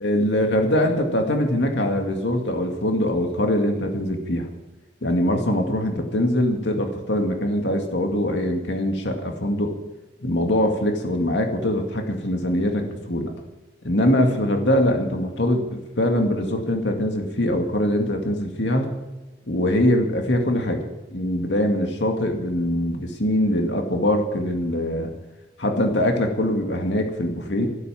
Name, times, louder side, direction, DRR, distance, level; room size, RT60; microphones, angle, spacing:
voice 1, 0.0-4.5 5.0-9.7 10.2-13.3 13.8-18.9 19.5-25.1 25.6-27.7, left 1 dB, 85° left, 3 dB, 2.2 m, -23 dB
13.0 x 12.5 x 7.2 m, 1.1 s
head